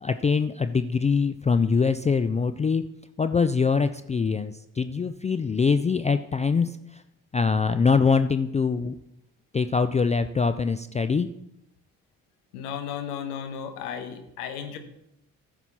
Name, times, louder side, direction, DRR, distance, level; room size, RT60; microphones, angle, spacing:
voice 1, 0.0-2.9 3.2-7.0 7.3-9.0 9.5-11.3, left 5 dB, 15° left, 11 dB, 0.4 m, -23 dB
voice 2, 12.5-14.8, left 8 dB, 75° left, 8 dB, 1.2 m, -34 dB
15.0 x 6.1 x 4.2 m, 0.82 s
figure-of-eight pair, 45°, 45 cm